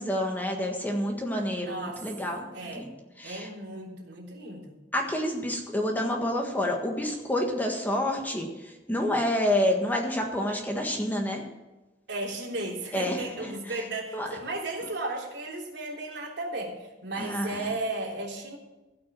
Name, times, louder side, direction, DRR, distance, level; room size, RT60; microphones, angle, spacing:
voice 1, 0.0-2.4 2.8-2.9 3.2-3.5 4.9-11.4 12.9-13.2 14.1-14.3 17.2-17.7, left 1 dB, 10° left, 1 dB, 1.6 m, -28 dB
voice 2, 1.5-2.0 2.5-2.9 3.2-4.7 12.1-18.6, right 2 dB, 70° right, -2 dB, 3.4 m, -35 dB
16.5 x 6.2 x 7.5 m, 1.1 s
head